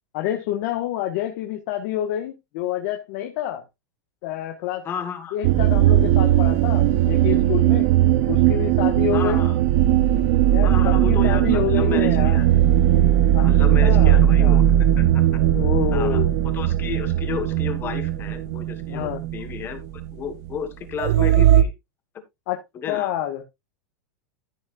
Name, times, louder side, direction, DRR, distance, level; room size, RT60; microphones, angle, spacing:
voice 1, 0.1-3.6 4.2-4.9 5.3-7.9 8.3-9.4 10.5-12.4 13.3-13.5 13.8-14.6 15.5-16.3 18.9-19.2 22.5-22.6 22.9-23.4, left 12 dB, 45° left, 1.5 m, -27 dB
voice 2, 4.8-5.4 9.1-9.6 10.6-12.5 13.4-14.6 15.0-15.2 15.9-16.2 16.5-21.7 22.7-23.1, left 8 dB, 20° left, 1.5 m, -32 dB
sound 1, 5.4-20.2 20.5-20.6 20.9-21.6, right 12 dB, 45° right, 0.6 m, -18 dB
14.0 x 6.5 x 2.5 m
supercardioid pair, 165°, 10 cm